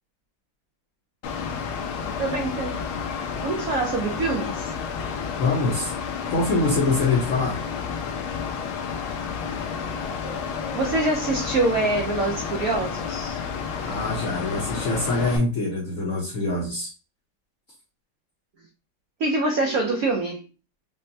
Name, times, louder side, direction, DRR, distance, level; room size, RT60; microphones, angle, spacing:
Mechanical fan, 1.2-15.4, left 6 dB, 85° left, 1.5 m, -31 dB
voice 1, 2.2-2.8 3.4-4.7 10.7-13.4 19.2-20.4, right 2 dB, 90° right, 1 dB, 0.7 m, -25 dB
voice 2, 5.4-5.9 6.3-7.6 13.8-16.9, left 3 dB, 60° left, -3 dB, 0.8 m, -24 dB
5.3 x 2.0 x 2.7 m, 0.33 s
omnidirectional pair, 2.3 m